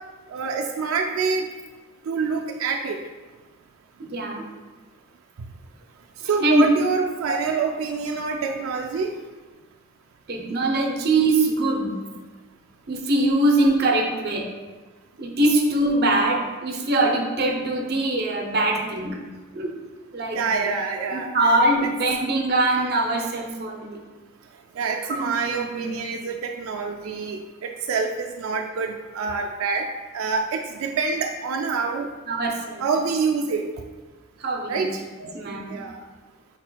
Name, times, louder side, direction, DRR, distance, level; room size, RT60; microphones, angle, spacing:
voice 1, 0.3-1.5 2.1-3.0 6.2-9.1 20.3-21.3 24.8-29.9 30.1-32.1 32.8-33.7 34.7-35.0 35.7-35.9, right 5 dB, 90° right, 3 dB, 0.3 m, -26 dB
voice 2, 4.0-4.5 6.4-6.7 7.3-7.4 10.3-11.9 12.9-14.5 15.2-19.2 19.5-19.8 20.1-20.7 21.1-24.0 25.1-25.9 32.3-32.8 34.4-34.9 35.2-35.8, right 2 dB, 50° right, 1 dB, 0.7 m, -23 dB
5.4 x 4.2 x 2.2 m, 1.3 s
head